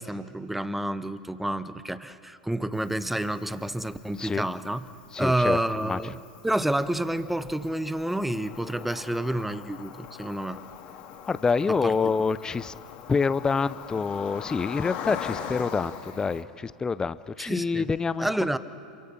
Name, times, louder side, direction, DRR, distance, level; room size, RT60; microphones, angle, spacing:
voice 1, 0.0-4.8 5.2-6.2 6.4-10.6 11.8-11.9 17.5-17.9 18.2-18.6, right 1 dB, 5° right, 13 dB, 1.0 m, -29 dB
Cricket, 2.7-16.4, left 8 dB, 50° left, 3.4 m, -42 dB
voice 2, 5.1-6.0 11.2-12.7 13.1-18.3, left 5 dB, 15° left, 16 dB, 0.6 m, -27 dB
27.0 x 24.5 x 5.9 m, 2.6 s
hypercardioid pair, 90°, 4 cm